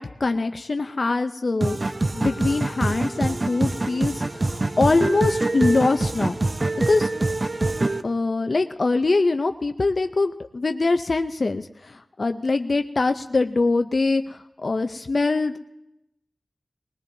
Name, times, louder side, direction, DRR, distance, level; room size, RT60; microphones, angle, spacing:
voice 1, 0.0-1.8 2.1-6.4 6.9-7.1 8.0-15.6, left 3 dB, 55° left, 8 dB, 0.4 m, -23 dB
sound 1, 1.6-8.0, right 2 dB, 40° right, 0.5 m, -25 dB
Marimba xylophone, 2.3-4.5, left 4 dB, 85° left, 1.9 m, -49 dB
21.0 x 19.5 x 2.7 m, 0.89 s
wide cardioid pair, 70°, 0 cm